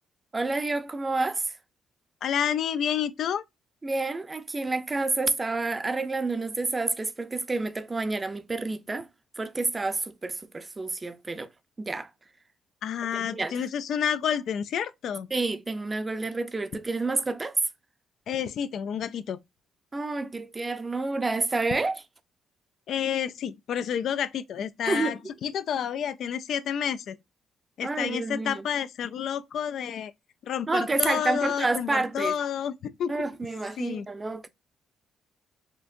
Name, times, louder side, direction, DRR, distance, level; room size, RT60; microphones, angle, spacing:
voice 1, 0.3-1.6 3.8-9.1 9.4-11.5 11.8-12.1 13.1-13.7 15.3-17.6 19.9-22.0 24.8-25.2 27.8-28.6 30.7-32.3 33.1-34.5, right 3 dB, 25° right, 0.5 m, -29 dB
voice 2, 2.2-3.4 12.8-15.3 18.3-19.4 22.9-27.2 27.8-30.1 30.4-33.1 33.8-34.1, left 8 dB, 70° left, 0.3 m, -29 dB
4.3 x 2.5 x 2.5 m
cardioid pair, 90°, 0 cm